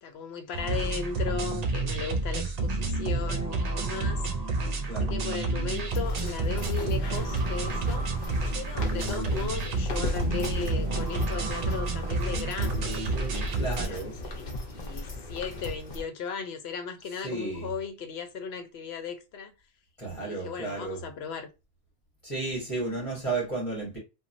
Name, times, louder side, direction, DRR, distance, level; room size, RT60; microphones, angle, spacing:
voice 1, 0.0-4.2 4.8-8.3 8.5-19.5 20.2-21.5, left 6 dB, 85° left, 0.9 m, -36 dB
sound 1, 0.5-13.9, right 3 dB, 50° right, 0.5 m, -29 dB
sound 2, 5.8-16.0, left 1 dB, 50° left, 0.8 m, -37 dB
voice 2, 13.5-14.2 17.1-17.7 20.0-21.0 22.2-24.0, right 3 dB, 30° left, 1.3 m, -33 dB
2.9 x 2.3 x 2.5 m
omnidirectional pair, 1.0 m